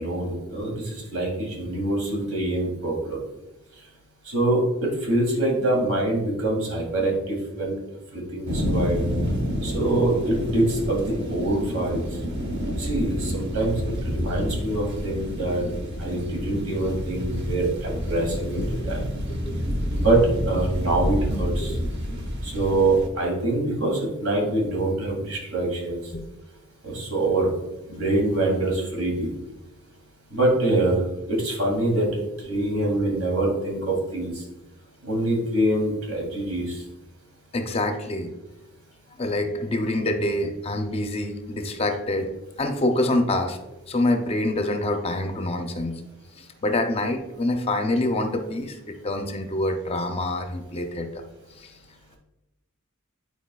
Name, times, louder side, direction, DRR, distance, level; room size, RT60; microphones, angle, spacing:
voice 1, 0.0-3.2 4.2-7.7 8.1-9.0 9.6-12.0 12.8-15.6 16.0-19.0 20.0-20.2 20.5-21.8 22.4-26.0 26.8-27.5 27.9-29.3 30.3-31.0 31.3-32.1 32.4-34.4 35.0-36.8, right 2 dB, 75° right, -1 dB, 2.1 m, -25 dB
sound 1, 8.5-23.1, equal, 50° right, 0.9 m, -29 dB
voice 2, 37.5-38.3 39.2-42.3 42.6-43.6 43.9-46.0 46.4-51.2 51.6-51.7, left 1 dB, 25° left, 6 dB, 0.5 m, -26 dB
10.5 x 4.5 x 2.3 m, 1.0 s
head